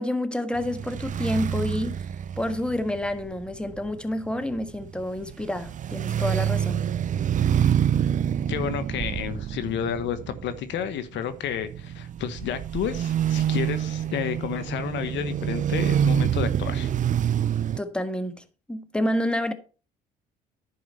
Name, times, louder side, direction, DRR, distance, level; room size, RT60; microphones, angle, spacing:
voice 1, 0.0-2.0 2.4-6.8 17.8-19.5, left 1 dB, 5° left, 1.4 m, -29 dB
sound 1, 0.5-17.8, right 9 dB, 40° right, 0.5 m, -27 dB
voice 2, 8.5-16.9, left 9 dB, 65° left, 1.1 m, -31 dB
11.0 x 5.0 x 5.5 m
supercardioid pair, 75°, 20 cm